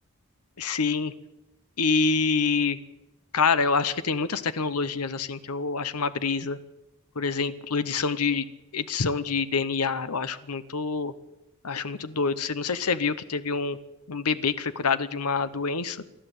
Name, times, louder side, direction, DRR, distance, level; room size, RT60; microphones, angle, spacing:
voice 1, 0.6-1.1 1.8-2.8 3.3-6.6 7.2-8.4 8.7-11.1 11.6-13.8 14.1-16.0, left 5 dB, 90° left, 13 dB, 1.0 m, -26 dB
27.5 x 11.5 x 8.3 m, 0.96 s
head